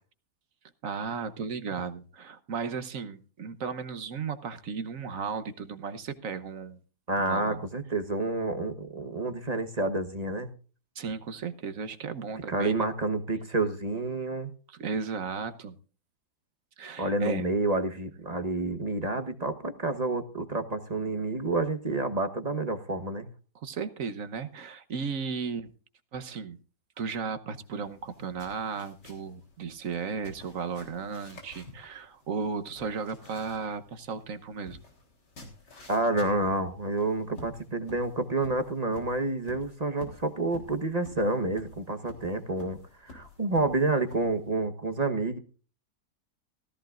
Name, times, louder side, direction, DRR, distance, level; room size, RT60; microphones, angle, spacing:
voice 1, 0.8-6.8 7.2-7.6 10.9-12.9 14.7-15.8 16.8-17.4 23.5-25.7 26.1-26.6 27.0-34.8, right 5 dB, 55° right, 10 dB, 1.3 m, -35 dB
voice 2, 7.1-10.5 12.5-14.5 17.0-23.3 35.9-45.4, right 2 dB, 30° right, 7 dB, 1.1 m, -29 dB
sound 1, 27.6-44.5, left 2 dB, 90° left, 4.1 m, -51 dB
16.5 x 14.5 x 2.5 m, 0.37 s
omnidirectional pair, 1.8 m